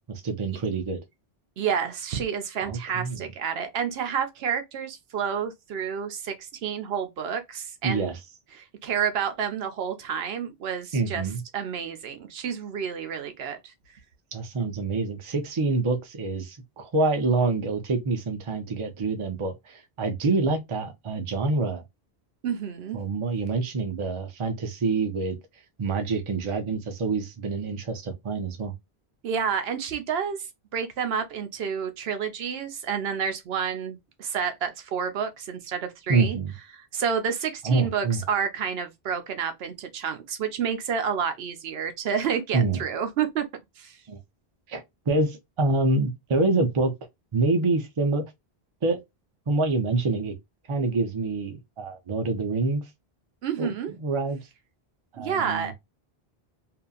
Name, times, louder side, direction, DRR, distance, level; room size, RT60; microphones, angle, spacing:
voice 1, 0.1-1.0 2.6-3.3 7.8-8.2 10.9-11.4 14.3-21.8 22.9-25.4 25.8-28.7 36.1-36.5 37.6-38.2 42.5-42.8 44.1-44.2 44.7-46.9 47.3-48.2 48.8-49.0 49.5-50.3 50.7-52.8 53.6-54.4 55.1-55.7, right 3 dB, 40° right, 0.5 m, -26 dB
voice 2, 1.6-8.1 8.5-11.3 11.5-13.7 22.4-23.0 29.2-30.5 30.7-36.4 36.7-43.4 43.8-44.0 53.4-53.9 55.2-55.7, right 7 dB, 75° right, 0.8 m, -29 dB
2.7 x 2.4 x 2.3 m
omnidirectional pair, 1.1 m